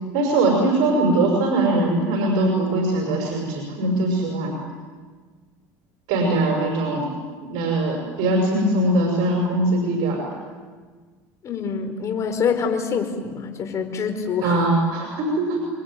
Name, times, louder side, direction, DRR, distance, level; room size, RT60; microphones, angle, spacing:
voice 1, 0.1-4.6 6.1-7.1 7.4-10.2 14.4-15.6, right 2 dB, 70° right, 1 dB, 6.1 m, -21 dB
voice 2, 11.4-14.7, left 6 dB, 40° left, 6 dB, 4.4 m, -25 dB
28.5 x 22.5 x 9.2 m, 1.5 s
supercardioid pair, 115°, 8 cm